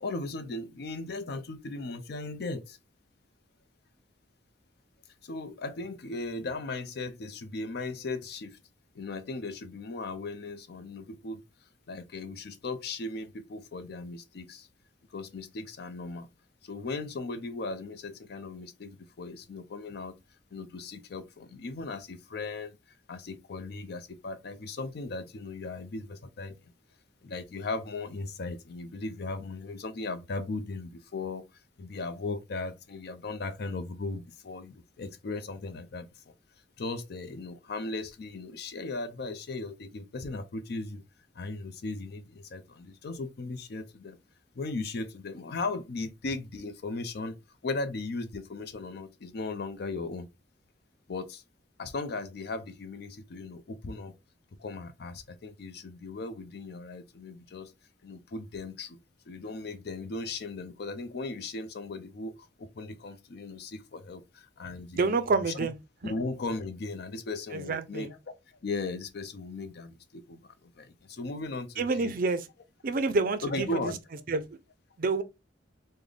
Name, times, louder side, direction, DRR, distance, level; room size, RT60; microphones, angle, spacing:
voice 1, 0.0-2.8 5.2-8.6 8.9-11.4 11.9-14.7 15.1-16.3 16.6-20.1 20.5-22.8 23.1-26.6 27.2-31.4 31.8-36.3 36.8-41.0 41.3-44.2 44.6-47.4 47.6-50.3 51.1-51.4 51.8-54.1 54.6-57.7 58.0-59.0 59.3-65.7 66.0-68.2 68.6-72.1 73.4-74.0, left 3 dB, 60° left, 0.5 m, -37 dB
voice 2, 65.0-65.7 66.0-66.1 67.5-68.1 71.8-72.5 72.8-73.9 74.3-74.4 75.0-75.2, right 3 dB, 50° right, 0.4 m, -28 dB
3.8 x 2.1 x 3.2 m
head